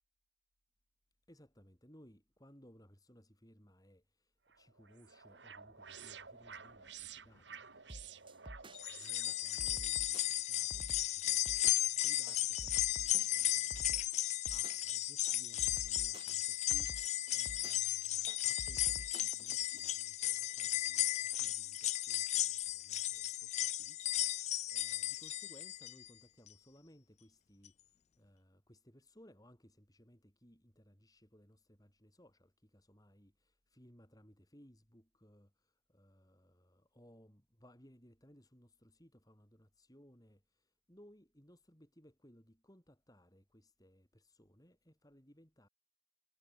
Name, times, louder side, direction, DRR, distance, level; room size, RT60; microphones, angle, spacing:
voice 1, 1.3-45.7, equal, 20° left, 7.2 m, -63 dB
sound 1, 4.5-9.7, right 7 dB, 75° right, 2.7 m, -52 dB
sound 2, 7.9-19.9, right 1 dB, 25° right, 1.8 m, -50 dB
sound 3, 8.7-26.1 26.5-26.6 27.7-27.8, left 13 dB, 35° left, 0.3 m, -35 dB
head